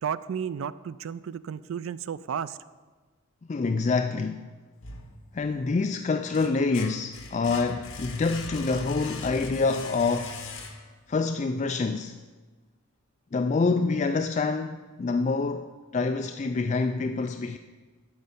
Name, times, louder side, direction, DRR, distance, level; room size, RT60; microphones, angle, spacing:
voice 1, 0.0-2.6, right 7 dB, 70° right, 0.3 m, -33 dB
voice 2, 3.5-4.5 5.3-10.4 11.1-12.2 13.3-17.6, left 4 dB, 35° left, 0.3 m, -26 dB
sound 1, 4.8-5.7 6.1-11.1, left 3 dB, 70° left, 1.4 m, -40 dB
11.5 x 5.5 x 8.4 m
head